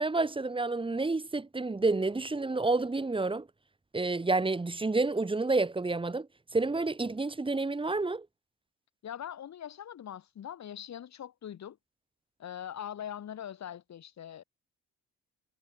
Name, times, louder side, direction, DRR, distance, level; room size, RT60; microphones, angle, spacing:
voice 1, 0.0-3.5 3.9-6.3 6.5-8.3, right 3 dB, 15° right, 1.6 m, -29 dB
voice 2, 9.0-11.8 12.4-14.4, left 9 dB, 65° left, 7.0 m, -42 dB
cardioid pair, 90°, 30 cm